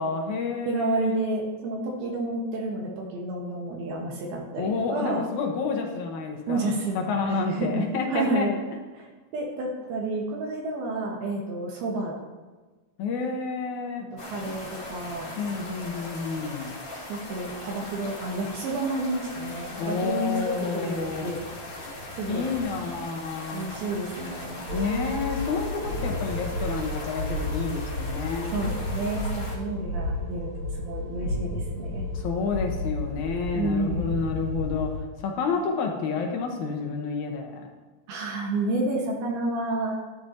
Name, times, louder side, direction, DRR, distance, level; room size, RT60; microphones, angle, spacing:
voice 1, 0.0-1.2 4.6-8.5 13.0-14.1 15.4-16.8 19.8-21.3 22.3-23.8 24.7-28.5 32.1-37.6, left 4 dB, 70° left, 2 dB, 2.0 m, -29 dB
voice 2, 0.7-5.2 6.5-8.6 8.9-12.2 14.2-15.3 17.1-21.4 22.1-22.5 23.5-24.6 28.5-32.1 33.5-34.1 38.1-39.9, right 2 dB, 80° right, -2 dB, 3.1 m, -30 dB
sound 1, 14.2-29.6, left 2 dB, 40° left, 2.1 m, -39 dB
sound 2, 24.7-35.0, left 1 dB, 40° right, 2.6 m, -32 dB
11.5 x 11.5 x 2.8 m, 1.3 s
omnidirectional pair, 4.5 m